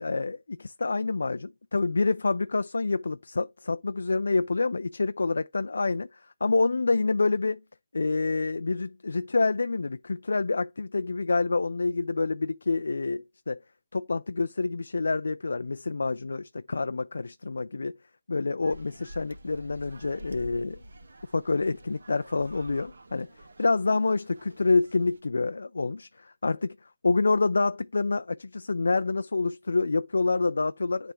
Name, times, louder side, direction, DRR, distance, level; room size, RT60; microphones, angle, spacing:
voice 1, 0.0-7.6 7.9-13.6 13.9-18.0 18.3-20.8 21.3-23.3 23.6-31.1, left 3 dB, 85° left, 0.3 m, -27 dB
sound 1, 18.6-25.2, right 1 dB, 85° right, 1.0 m, -48 dB
9.6 x 3.4 x 2.9 m
hypercardioid pair, 160°, 0 cm